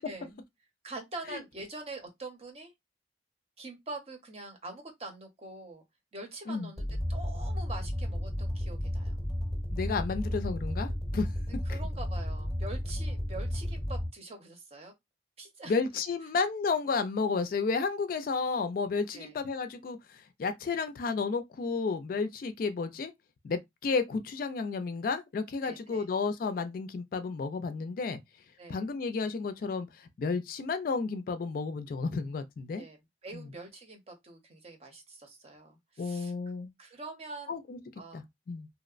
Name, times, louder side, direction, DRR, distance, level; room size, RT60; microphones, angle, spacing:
voice 1, 0.1-0.4 0.8-2.7 3.6-5.8 6.1-9.3 11.7-14.9 15.4-15.8 19.1-19.4 25.6-26.1 28.6-28.8 32.8-36.3 36.8-37.6 38.0-38.2, right 2 dB, 35° right, 0.7 m, -44 dB
sound 1, 6.8-14.1, left 1 dB, ahead, 0.7 m, -33 dB
voice 2, 9.7-11.3 11.7-11.8 15.7-23.1 23.4-28.2 28.7-32.8 33.3-33.5 36.0-36.7 37.5-37.8 38.1-38.7, left 4 dB, 50° left, 0.3 m, -32 dB
2.8 x 2.0 x 2.4 m
head